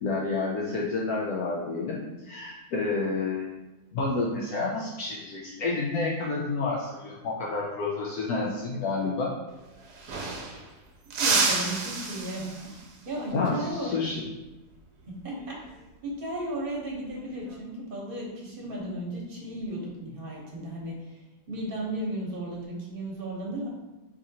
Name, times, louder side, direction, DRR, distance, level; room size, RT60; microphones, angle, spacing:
voice 1, 0.0-2.0 2.2-3.5 3.9-9.3 13.3-14.2, left 3 dB, 70° left, -4 dB, 1.1 m, -29 dB
sound 1, 9.5-9.6 9.8-10.7 11.1-12.9 15.4-15.7 17.1-17.5, right 4 dB, 85° right, 1.2 m, -29 dB
voice 2, 11.2-12.8 13.0-13.9 15.1-15.5 16.0-21.2 21.5-23.7, right 1 dB, 40° right, -4 dB, 1.0 m, -35 dB
4.8 x 2.9 x 2.7 m, 1.1 s
omnidirectional pair, 1.7 m